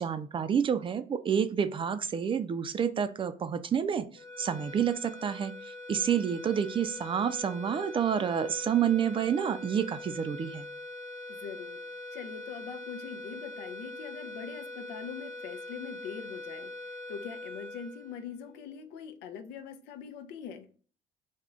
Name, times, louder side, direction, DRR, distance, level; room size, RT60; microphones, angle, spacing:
voice 1, 0.0-4.0 4.4-10.7, right 8 dB, 30° right, 0.4 m, -29 dB
sound 1, 4.1-18.7, left 2 dB, 25° left, 0.8 m, -43 dB
voice 2, 11.3-11.8 12.1-16.7 17.1-20.7, left 7 dB, 90° left, 0.5 m, -43 dB
3.4 x 2.1 x 3.7 m
cardioid pair, 110°, 17 cm